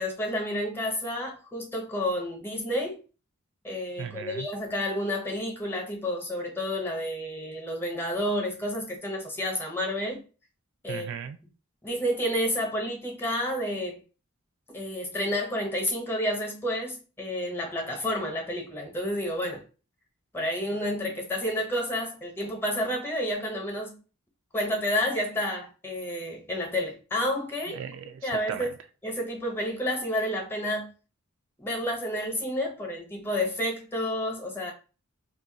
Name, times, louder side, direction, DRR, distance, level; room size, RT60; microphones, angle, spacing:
voice 1, 0.0-3.0 3.6-10.2 10.8-11.1 11.8-14.0 14.7-19.6 20.3-24.0 24.5-27.8 28.2-28.7 29.0-30.9 31.6-34.7, left 1 dB, 10° left, 0.8 m, -30 dB
voice 2, 4.0-4.5 10.9-11.4 27.7-28.7, right 7 dB, 60° right, 0.3 m, -37 dB
2.4 x 2.2 x 3.8 m
head